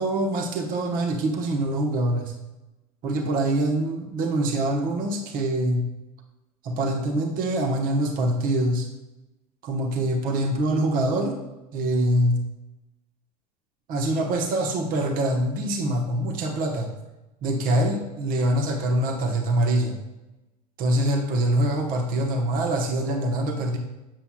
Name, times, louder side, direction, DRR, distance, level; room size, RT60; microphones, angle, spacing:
voice 1, 0.0-2.3 3.0-5.9 6.6-8.9 9.6-11.4 11.7-12.4 13.9-16.9 17.4-20.0 20.8-23.8, right 1 dB, 45° right, 3 dB, 1.1 m, -24 dB
7.4 x 6.9 x 2.2 m, 1.0 s
hypercardioid pair, 80°, 20 cm